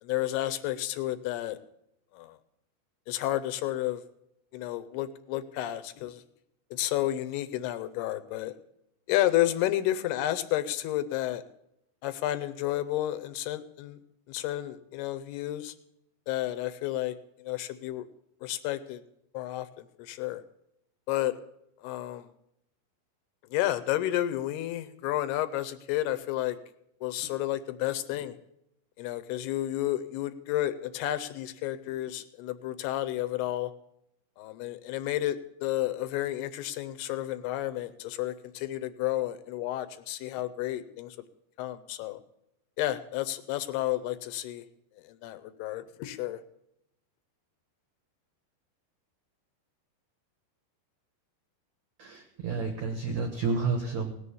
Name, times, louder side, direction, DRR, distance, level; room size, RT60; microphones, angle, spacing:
voice 1, 0.0-1.6 2.1-2.4 3.1-4.0 4.5-6.2 6.7-8.5 9.1-11.4 12.0-14.0 14.3-15.7 16.3-17.2 17.4-18.0 18.4-19.0 19.3-20.4 21.1-21.4 21.8-22.3 23.5-26.6 27.0-28.4 29.0-33.7 34.4-41.2 41.6-42.2 42.8-44.7 45.0-46.4, left 14 dB, 80° left, 12 dB, 2.6 m, -31 dB
voice 2, 52.0-54.1, right 4 dB, 70° right, 4 dB, 1.7 m, -30 dB
18.0 x 6.9 x 6.9 m, 0.80 s
omnidirectional pair, 4.9 m